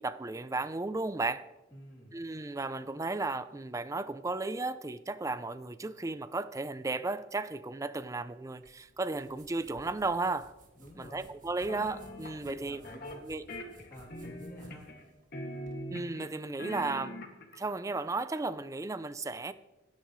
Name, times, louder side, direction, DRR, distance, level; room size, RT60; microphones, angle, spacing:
voice 1, 0.0-1.5 2.1-10.5 11.0-12.8 13.2-13.5 15.9-17.2 17.6-19.5, right 3 dB, 15° right, 0.4 m, -34 dB
voice 2, 1.7-2.2 10.7-11.2 12.3-13.2 13.9-14.9, equal, 15° left, 3.0 m, -50 dB
sound 1, 8.6-15.8, right 1 dB, 40° right, 1.9 m, -58 dB
sound 2, 11.7-12.4 12.8-13.2 13.5-15.0 15.3-16.3 16.6-17.6, equal, 50° left, 2.1 m, -42 dB
29.0 x 10.5 x 3.1 m
head